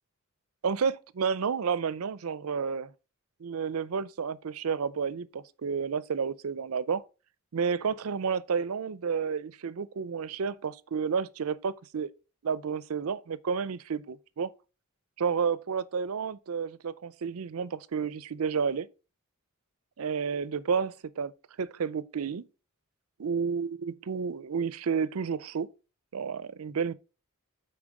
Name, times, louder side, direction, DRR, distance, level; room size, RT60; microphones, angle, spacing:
voice 1, 0.6-2.9 3.4-7.0 7.5-12.1 12.4-14.5 15.2-18.9 20.0-21.3 21.6-22.5 23.2-25.7 26.1-26.9, right 6 dB, 85° right, 0.5 m, -31 dB
8.8 x 4.5 x 4.7 m
head